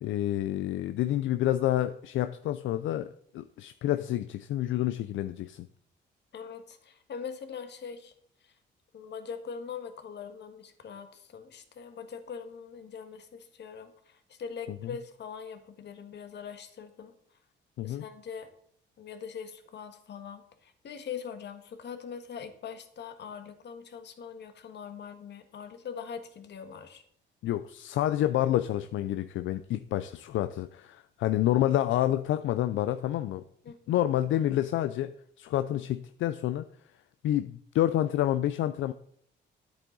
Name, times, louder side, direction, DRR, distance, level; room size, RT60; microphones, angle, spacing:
voice 1, 0.0-5.7 14.8-14.9 17.8-18.0 27.4-33.4 33.9-36.7 37.2-38.9, left 13 dB, 80° left, 11 dB, 0.5 m, -28 dB
voice 2, 6.3-8.1 8.4-8.5 8.9-17.1 17.8-18.5 19.0-27.0 33.6-34.0, left 6 dB, 60° left, 8 dB, 1.6 m, -42 dB
10.0 x 8.5 x 3.9 m, 0.66 s
cardioid pair, 90°, 20 cm